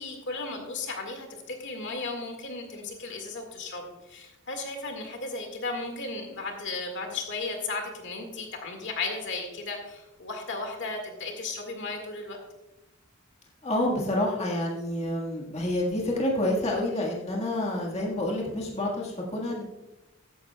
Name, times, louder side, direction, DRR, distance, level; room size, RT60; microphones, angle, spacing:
voice 1, 0.0-12.4, left 3 dB, 55° left, 3 dB, 1.9 m, -35 dB
voice 2, 13.6-19.6, left 1 dB, 30° left, -2 dB, 1.6 m, -28 dB
14.0 x 10.0 x 2.3 m, 1.0 s
head